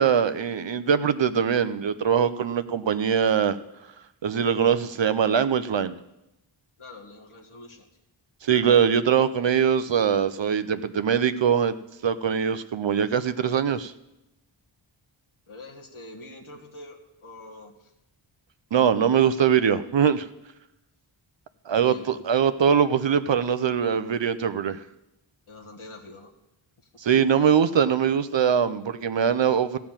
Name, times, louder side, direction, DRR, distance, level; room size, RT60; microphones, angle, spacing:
voice 1, 0.0-3.6 4.2-6.0 8.4-11.8 12.0-13.9 18.7-20.3 21.7-24.8 27.0-29.8, right 7 dB, 65° right, 12 dB, 0.6 m, -22 dB
voice 2, 6.8-7.7 15.5-17.0 17.2-17.7 21.8-22.0 25.5-26.3, left 2 dB, 85° left, 0 dB, 1.7 m, -44 dB
14.0 x 5.9 x 8.8 m, 0.91 s
wide cardioid pair, 65°, 48 cm